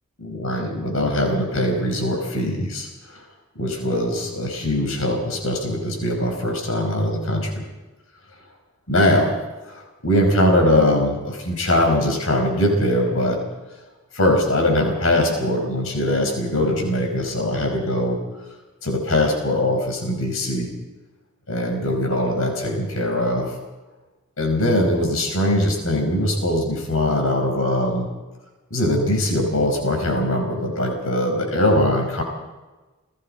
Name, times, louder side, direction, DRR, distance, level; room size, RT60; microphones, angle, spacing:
voice 1, 0.2-2.9 3.6-7.6 8.9-9.4 9.7-13.4 14.1-18.2 18.8-20.7 21.5-23.5 24.4-28.1 28.7-32.2, left 1 dB, 80° left, 2 dB, 5.2 m, -21 dB
29.5 x 20.0 x 4.4 m, 1.2 s
head